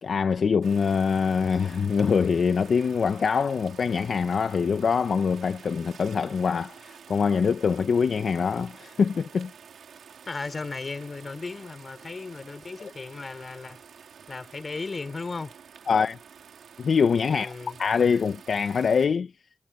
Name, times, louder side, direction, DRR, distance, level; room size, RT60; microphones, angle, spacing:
voice 1, 0.0-9.5 12.8-12.9 15.9-16.2 16.8-17.5 17.8-19.3, left 6 dB, 75° left, 1.0 m, -24 dB
sound 1, 0.6-19.1, right 7 dB, 85° right, 3.7 m, -49 dB
voice 2, 10.3-13.8 14.3-15.5 17.3-17.8, left 3 dB, 50° left, 5.0 m, -36 dB
cardioid pair, 40°, 0 cm